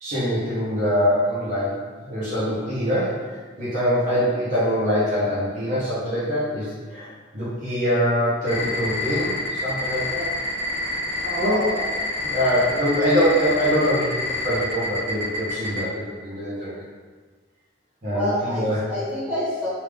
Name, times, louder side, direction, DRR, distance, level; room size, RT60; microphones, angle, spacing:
voice 1, 0.0-10.3 11.4-11.6 12.2-16.8 18.0-18.8, equal, 40° right, -10 dB, 0.9 m, -24 dB
sound 1, 8.5-15.8, left 2 dB, 80° right, 1.3 m, -28 dB
voice 2, 11.2-11.8 18.1-19.7, equal, 10° right, -12 dB, 1.3 m, -27 dB
3.3 x 2.7 x 3.4 m, 1.5 s
head